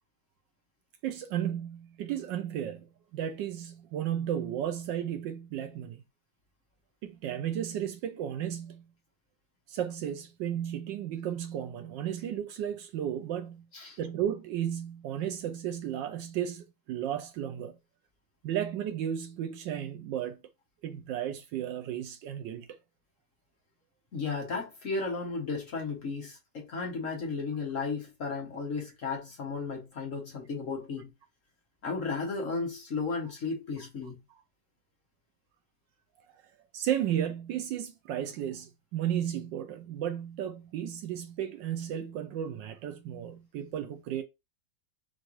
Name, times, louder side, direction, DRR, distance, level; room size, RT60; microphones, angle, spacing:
voice 1, 1.0-6.0 7.0-8.9 9.7-13.7 14.0-17.8 18.4-20.4 20.8-22.7 36.7-44.2, right 10 dB, 75° right, 1.2 m, -34 dB
voice 2, 24.1-31.1 31.8-34.2, left 4 dB, 45° left, 1.3 m, -34 dB
6.0 x 2.5 x 3.1 m
omnidirectional pair, 2.2 m